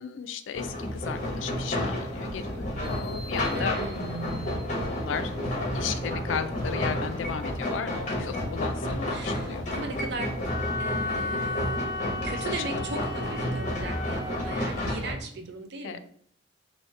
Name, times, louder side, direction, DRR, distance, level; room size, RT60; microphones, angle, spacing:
voice 1, 0.0-3.8 4.8-9.7 12.3-13.0 15.8-16.0, left 7 dB, 80° left, 10 dB, 0.3 m, -35 dB
sound 1, 0.5-15.1, left 1 dB, 40° left, 0.9 m, -31 dB
sound 2, 2.4-6.4 6.8-10.0 10.4-10.5 10.9-12.0 12.3-12.4 13.1-15.0, equal, 20° left, 1.5 m, -46 dB
voice 2, 3.5-4.5 9.0-10.4 10.8-16.0, right 3 dB, 65° right, 5 dB, 0.5 m, -38 dB
Wind instrument woodwind instrument, 10.5-14.7, left 3 dB, 20° right, 1.1 m, -34 dB
3.1 x 2.7 x 3.1 m, 0.63 s
head